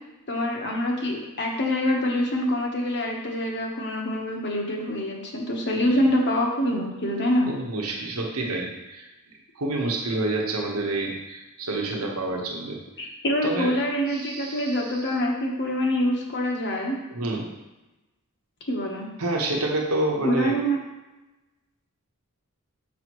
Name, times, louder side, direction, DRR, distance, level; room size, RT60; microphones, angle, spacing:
voice 1, 0.3-7.5 13.0-17.0 18.7-19.1 20.2-20.8, equal, 55° left, 0 dB, 1.2 m, -25 dB
voice 2, 7.5-9.1 9.5-12.8 13.4-13.8 14.1-15.1 17.1-17.5 19.2-20.5, right 2 dB, 80° right, -1 dB, 1.1 m, -28 dB
6.3 x 6.2 x 3.1 m, 1.0 s
head